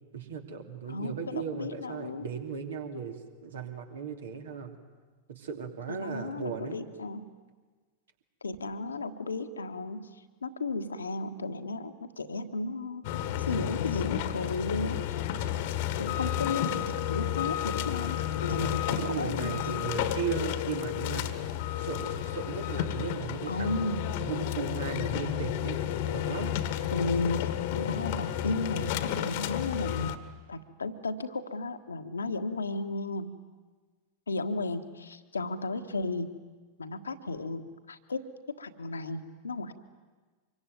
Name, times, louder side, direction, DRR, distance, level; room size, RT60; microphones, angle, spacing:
voice 1, 0.1-4.7 5.3-6.8 18.6-18.7 19.0-21.4 21.8-25.8 26.1-26.6, right 7 dB, 65° right, 4 dB, 3.0 m, -36 dB
voice 2, 0.9-2.2 5.9-7.2 8.4-10.1 10.4-15.2 16.0-19.8 23.5-24.1 26.9-30.2 30.5-33.3 34.3-36.3 36.8-38.2 38.6-39.7, left 3 dB, 75° left, 7 dB, 1.6 m, -34 dB
sound 1, 13.0-30.2, left 11 dB, 50° left, 1.5 m, -32 dB
25.5 x 23.0 x 9.4 m, 1.4 s
figure-of-eight pair, 90°, 0 cm